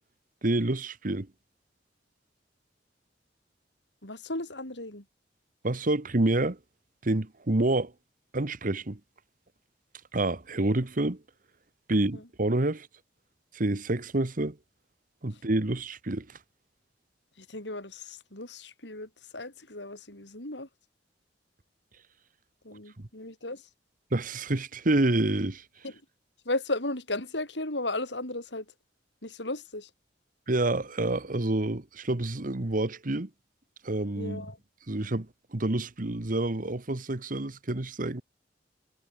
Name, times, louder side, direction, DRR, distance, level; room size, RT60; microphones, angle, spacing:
voice 1, 0.4-1.3 5.6-6.6 7.0-7.9 8.3-9.0 10.1-11.2 11.9-12.9 13.5-14.6 15.2-16.3 23.0-23.1 24.1-25.6 30.5-33.3 33.8-34.4 34.9-35.3 35.5-38.2, right 2 dB, 50° right, 1.4 m, -28 dB
voice 2, 4.0-5.0 12.1-12.2 17.4-20.7 22.6-23.6 25.8-26.0 26.5-28.7 29.2-29.9 34.2-34.6, left 2 dB, 75° left, 7.4 m, -35 dB
head